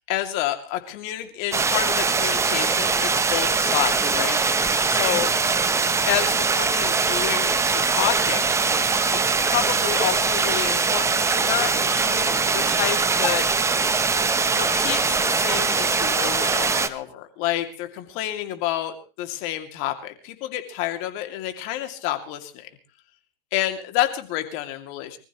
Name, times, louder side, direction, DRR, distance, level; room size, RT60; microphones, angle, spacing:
voice 1, 0.1-5.3 6.0-8.5 9.5-13.5 14.5-22.7 23.5-25.2, left 13 dB, 45° left, 7 dB, 2.6 m, -29 dB
sound 1, 1.5-16.9, right 4 dB, 10° right, 0.8 m, -22 dB
25.0 x 14.5 x 3.1 m, 0.34 s
supercardioid pair, 140°, 29 cm